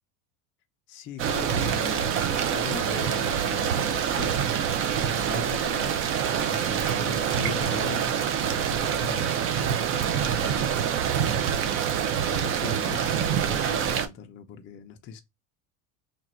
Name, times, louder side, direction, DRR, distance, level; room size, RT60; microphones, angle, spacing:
voice 1, 0.9-5.9 6.3-10.6 12.3-15.2, left 7 dB, 30° left, 0.5 m, -40 dB
sound 1, 1.2-14.1, right 8 dB, 35° right, 0.4 m, -26 dB
2.9 x 2.5 x 4.2 m
cardioid pair, 150°, 39 cm